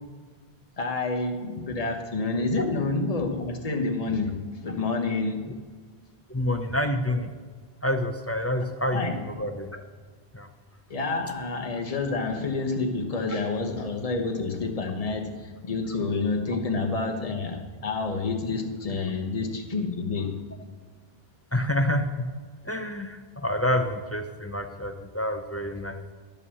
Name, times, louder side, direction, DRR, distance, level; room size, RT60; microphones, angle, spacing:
voice 1, 0.8-5.5 8.9-9.2 10.9-20.5, left 3 dB, 40° left, 3 dB, 1.1 m, -28 dB
voice 2, 6.3-7.3 7.8-9.8 10.3-10.5 21.5-22.3 22.6-26.0, left 1 dB, 20° left, 5 dB, 0.5 m, -28 dB
11.0 x 5.5 x 7.1 m, 1.5 s
omnidirectional pair, 1.0 m